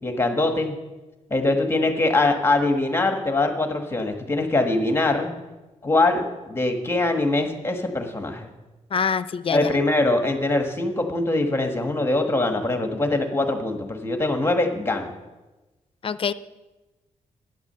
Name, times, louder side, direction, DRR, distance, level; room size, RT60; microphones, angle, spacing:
voice 1, 0.0-0.8 1.3-5.3 5.8-8.5 9.5-15.1, left 2 dB, 20° left, 4 dB, 1.3 m, -23 dB
voice 2, 8.9-9.7 16.0-16.3, left 6 dB, 45° left, 15 dB, 0.5 m, -25 dB
11.0 x 9.4 x 6.7 m, 1.1 s
cardioid pair, 110°, 13 cm